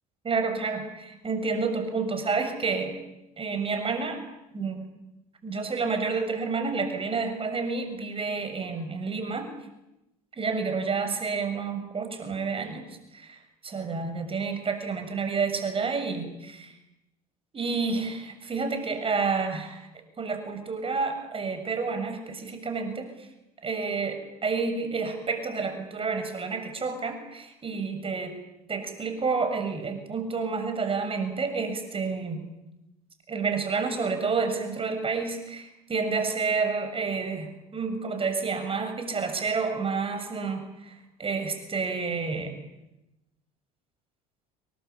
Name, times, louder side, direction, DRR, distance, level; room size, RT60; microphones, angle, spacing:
voice 1, 0.2-3.0 3.4-4.2 4.5-4.8 5.4-9.5 10.4-12.8 13.1-16.7 17.5-19.9 20.2-23.3 23.6-28.3 28.7-32.4 33.3-37.5 37.7-40.9 41.2-42.6, right 4 dB, 30° right, 7 dB, 7.0 m, -29 dB
26.5 x 24.0 x 8.7 m, 0.92 s
hypercardioid pair, 70°, 19 cm